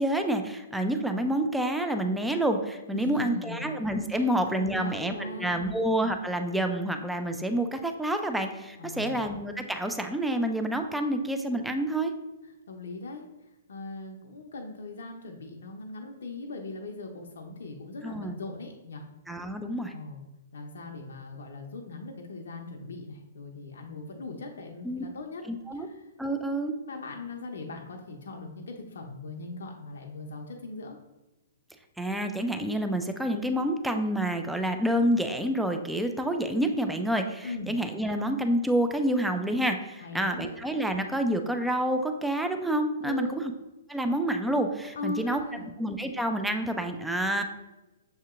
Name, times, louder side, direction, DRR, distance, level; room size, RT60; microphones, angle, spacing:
voice 1, 0.0-12.1 18.0-18.3 19.3-19.9 24.8-25.0 25.5-25.9 26.2-26.7 32.0-43.4 43.9-45.4 45.8-47.4, right 1 dB, 5° right, 5 dB, 0.3 m, -28 dB
voice 2, 2.9-3.6 4.1-4.3 4.5-5.7 8.8-9.2 12.4-19.1 19.9-20.2 20.5-25.5 25.7-31.0 37.4-37.7 40.0-40.6 43.0-43.4 44.9-45.7, left 3 dB, 75° left, 1 dB, 0.5 m, -40 dB
6.4 x 2.8 x 2.4 m, 1.0 s
hypercardioid pair, 130°, 0 cm